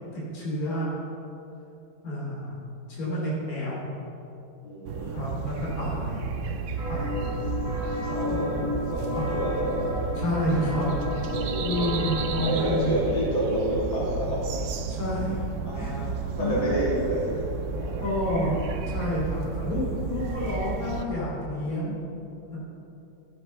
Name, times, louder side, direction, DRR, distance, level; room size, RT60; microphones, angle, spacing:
voice 1, 0.1-0.9 2.0-2.5 2.9-3.8 5.1-6.3 6.9-7.2 8.3-8.7 9.1-9.3 10.1-10.9 11.6-13.0 14.9-15.4 15.7-16.0 16.4-16.8 18.0-18.6 18.9-22.0 22.5-22.6, left 1 dB, 45° left, -5 dB, 3.3 m, -29 dB
voice 2, 4.6-5.2 7.0-7.6 8.0-9.9 10.5-10.6 11.3-11.9 12.4-14.4 15.6-17.5 17.8-18.3, right 1 dB, 80° left, -7 dB, 3.7 m, -30 dB
sound 1, 4.8-21.0, right 4 dB, 85° right, 0.6 m, -32 dB
sound 2, 6.8-12.8, left 2 dB, 15° left, 2.6 m, -33 dB
12.5 x 8.2 x 5.5 m, 2.9 s
omnidirectional pair, 2.1 m